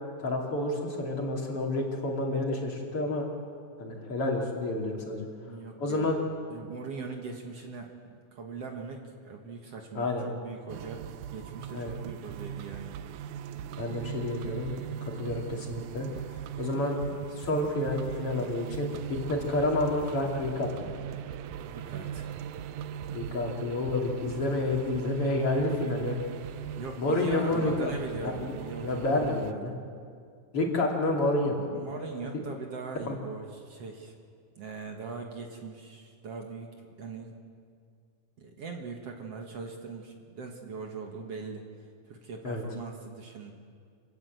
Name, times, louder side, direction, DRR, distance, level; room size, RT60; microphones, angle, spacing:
voice 1, 0.2-3.3 3.8-5.3 5.8-6.2 10.0-10.2 11.7-11.9 13.8-14.7 15.2-16.1 16.6-17.0 17.4-20.9 23.1-26.2 27.0-27.9 28.2-29.7 30.5-31.7 33.1-33.2 42.4-42.6, left 2 dB, 45° left, -1 dB, 3.6 m, -29 dB
voice 2, 5.5-6.1 6.5-12.9 21.6-22.3 26.8-29.7 31.7-34.1 34.6-37.4 38.4-41.6 42.1-43.5, right 4 dB, 55° right, 2 dB, 2.5 m, -41 dB
sound 1, 10.7-29.5, right 9 dB, 75° right, 2.0 m, -40 dB
26.5 x 18.0 x 7.9 m, 2.2 s
omnidirectional pair, 3.6 m